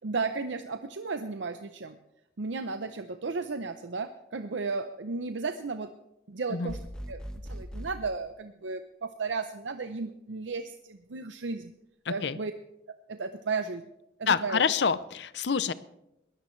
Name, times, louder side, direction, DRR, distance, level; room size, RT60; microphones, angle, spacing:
voice 1, 0.0-2.0 2.4-5.9 6.3-6.8 7.1-7.2 7.5-11.7 12.1-12.5 13.1-13.8 14.2-14.6, right 4 dB, 90° right, 8 dB, 0.7 m, -34 dB
sound 1, 6.7-8.0, equal, 5° left, 1.0 m, -39 dB
voice 2, 12.1-12.4 14.3-15.7, left 6 dB, 70° left, 16 dB, 0.6 m, -27 dB
21.0 x 16.0 x 3.2 m, 0.86 s
head